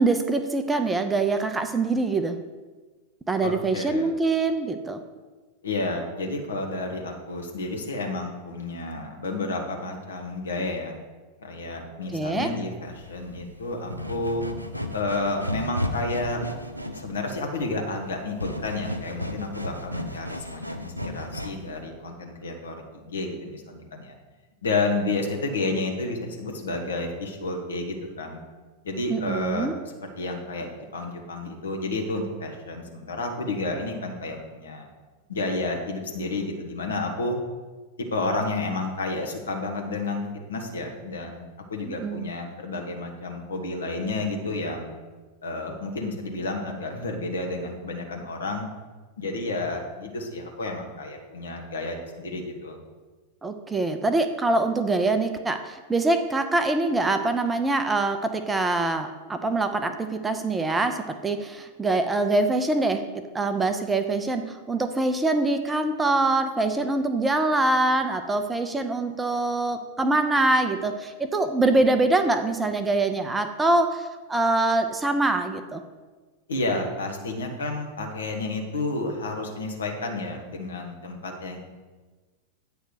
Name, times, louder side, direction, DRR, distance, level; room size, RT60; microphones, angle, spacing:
voice 1, 0.0-2.4 3.3-5.0 12.1-12.5 29.1-29.7 41.9-42.3 53.4-63.0 63.3-75.8, right 2 dB, 10° right, 7 dB, 0.5 m, -24 dB
voice 2, 3.4-4.1 5.6-10.9 11.4-14.4 14.9-16.4 17.0-24.1 24.6-28.4 28.8-29.7 30.2-34.9 35.3-37.4 38.0-44.9 45.4-48.7 49.2-52.8 76.5-81.7, left 2 dB, 70° left, 2 dB, 1.2 m, -31 dB
sound 1, 12.8-21.8, left 1 dB, 90° right, 0.5 m, -34 dB
8.9 x 3.3 x 6.5 m, 1.3 s
figure-of-eight pair, 90°, 0 cm